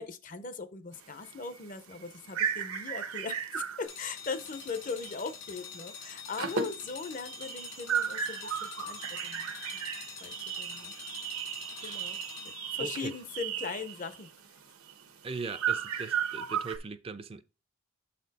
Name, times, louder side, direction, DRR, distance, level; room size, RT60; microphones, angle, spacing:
voice 1, 0.0-9.5 10.2-10.9 11.8-14.3, left 4 dB, 40° left, 0.6 m, -40 dB
sound 1, 0.9-5.3 5.6-5.8 6.1-16.8, right 8 dB, 90° right, 0.9 m, -35 dB
sound 2, 3.8-12.9, left 6 dB, 65° left, 2.0 m, -46 dB
voice 2, 11.7-12.1 12.8-13.2 15.2-17.4, right 4 dB, 25° right, 0.4 m, -40 dB
7.0 x 4.3 x 4.0 m
head